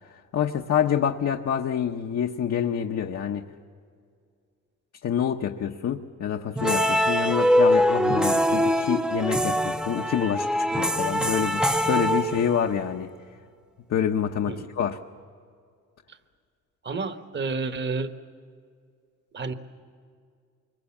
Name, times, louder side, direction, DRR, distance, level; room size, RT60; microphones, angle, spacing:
voice 1, 0.3-3.5 5.0-13.1 13.9-15.0, left 8 dB, 55° left, 2 dB, 1.0 m, -27 dB
sound 1, 6.6-12.8, equal, 5° right, 0.7 m, -23 dB
voice 2, 16.8-18.1 19.3-19.5, right 4 dB, 35° right, 9 dB, 1.4 m, -30 dB
25.0 x 23.0 x 7.3 m, 2.2 s
cardioid pair, 90°, 30 cm